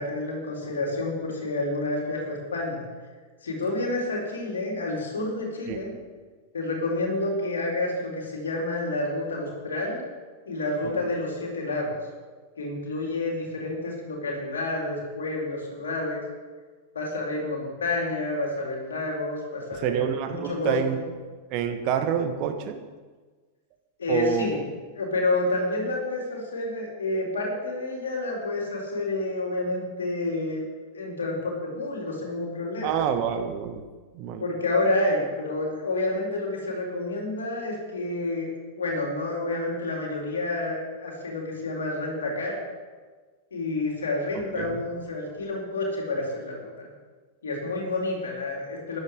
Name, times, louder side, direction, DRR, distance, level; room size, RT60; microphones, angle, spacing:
voice 1, 0.0-2.8 3.4-6.0 6.5-10.1 10.5-12.0 12.6-16.2 16.9-21.1 24.0-24.6 24.9-30.6 30.9-33.0 34.4-38.5 38.8-42.6 43.5-46.9 47.4-49.0, left 2 dB, 70° left, -1 dB, 3.9 m, -29 dB
voice 2, 19.7-21.0 21.5-22.8 24.1-24.6 32.8-33.8 34.1-34.4 44.5-44.8, right 8 dB, 40° right, 6 dB, 1.4 m, -27 dB
14.5 x 11.0 x 5.0 m, 1.4 s
figure-of-eight pair, 90°, 0 cm